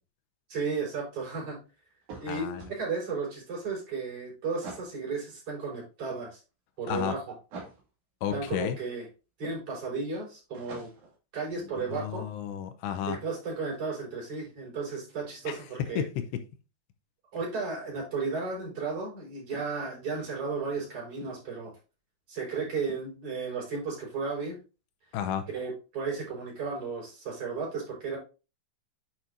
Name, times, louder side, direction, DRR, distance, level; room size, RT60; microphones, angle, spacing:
voice 1, 0.5-1.6 2.2-6.4 6.8-7.4 8.3-9.1 9.4-10.9 11.3-12.3 13.1-16.0 17.3-21.7 22.3-24.6 25.5-28.2, right 4 dB, 30° right, -4 dB, 5.3 m, -34 dB
sound 1, 2.0-2.8 4.6-5.0 7.5-7.8 10.5-11.2, right 3 dB, 50° right, 2.7 m, -43 dB
voice 2, 2.3-2.7 6.9-7.1 8.2-8.8 11.9-13.2 15.5-16.2 25.1-25.5, left 9 dB, 75° left, 6 dB, 2.7 m, -32 dB
8.9 x 6.2 x 2.7 m, 0.31 s
omnidirectional pair, 5.6 m